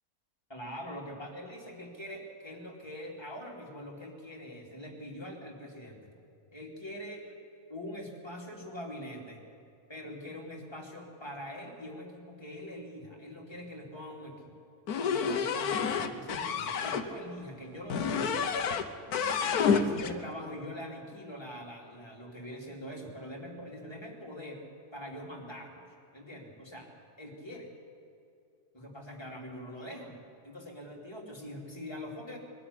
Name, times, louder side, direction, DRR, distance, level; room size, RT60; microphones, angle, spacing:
voice 1, 0.5-6.1 6.5-7.2 7.7-9.4 9.9-14.5 15.0-18.5 19.1-19.4 19.7-24.6 24.9-25.8 26.1-26.9 27.2-27.7 28.7-30.2 30.4-32.4, equal, 15° left, -2 dB, 3.1 m, -43 dB
sound 1, 14.9-17.1 17.9-18.9 19.1-20.1, left 6 dB, 75° left, 1.4 m, -29 dB
22.0 x 12.5 x 9.9 m, 2.5 s
omnidirectional pair, 1.6 m